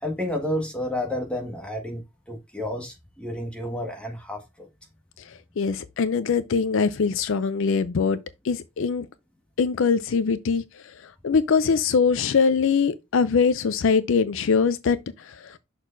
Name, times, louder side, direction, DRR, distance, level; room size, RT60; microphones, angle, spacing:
voice 1, 0.0-2.0 2.3-4.7, left 1 dB, 5° left, 1.6 m, -30 dB
voice 2, 5.2-8.2 8.4-9.1 9.6-15.6, left 5 dB, 65° left, 0.4 m, -23 dB
6.3 x 6.0 x 2.6 m
head